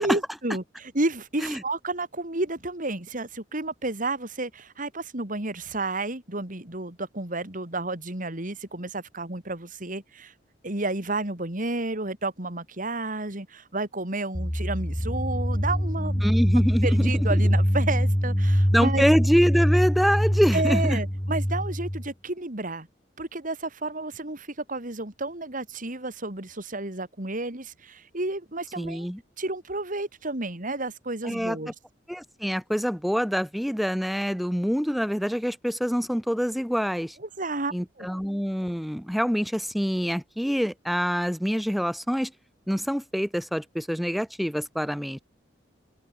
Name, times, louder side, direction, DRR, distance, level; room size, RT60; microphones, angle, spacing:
voice 1, 0.0-10.3 10.6-16.3 16.8-19.0 20.5-22.9 23.2-29.1 29.4-31.7 37.2-38.1, right 2 dB, 45° right, 3.2 m, -31 dB
sound 1, 14.3-22.1, equal, 15° left, 4.4 m, -24 dB
voice 2, 16.2-17.1 18.7-21.0 28.8-29.2 31.2-31.6 32.1-37.1 37.7-42.3 42.7-45.2, equal, ahead, 4.9 m, -25 dB
open air
head